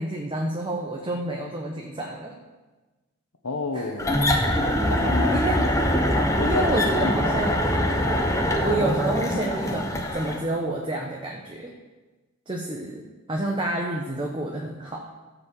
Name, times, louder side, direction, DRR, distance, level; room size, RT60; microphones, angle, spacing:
voice 1, 0.0-2.4 3.7-3.9 5.3-5.6 6.4-7.6 8.6-11.7 12.5-15.0, right 1 dB, 20° right, 1 dB, 0.9 m, -29 dB
voice 2, 3.4-4.2 4.8-6.1 6.4-6.7 7.0-7.4, left 3 dB, 85° left, 4 dB, 1.2 m, -30 dB
sound 1, 4.0-10.4, equal, 15° left, 1.0 m, -23 dB
13.5 x 5.2 x 7.5 m, 1.2 s
head